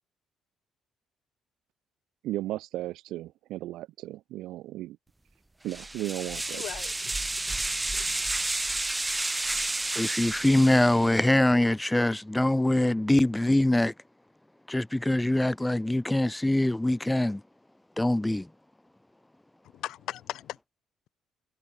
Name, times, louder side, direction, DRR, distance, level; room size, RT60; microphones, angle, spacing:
voice 1, 2.2-5.0 5.6-6.6, right 15 dB, 80° right, 0.7 m, -35 dB
sound 1, 5.7-11.3, right 2 dB, 10° right, 1.5 m, -31 dB
voice 2, 6.5-7.1 7.9-8.2 19.7-20.6, left 13 dB, 75° left, 3.5 m, -38 dB
voice 3, 10.0-13.9 14.7-17.4 18.0-18.5, left 1 dB, 5° left, 0.3 m, -23 dB
cardioid pair, 135°, 0 cm